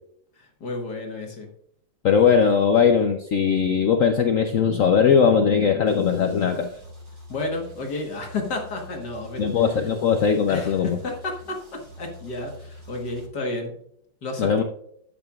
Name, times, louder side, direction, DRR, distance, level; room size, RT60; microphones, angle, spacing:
voice 1, 0.4-1.5 7.3-9.6 10.5-13.8 14.2-14.6, left 2 dB, 55° left, 1 dB, 1.9 m, -31 dB
voice 2, 2.0-6.7 9.4-11.0 14.4-14.6, left 6 dB, 75° left, 5 dB, 0.7 m, -19 dB
sound 1, 5.9-13.3, left 1 dB, 90° right, 4.3 m, -45 dB
12.5 x 8.9 x 2.4 m, 0.69 s
omnidirectional pair, 2.2 m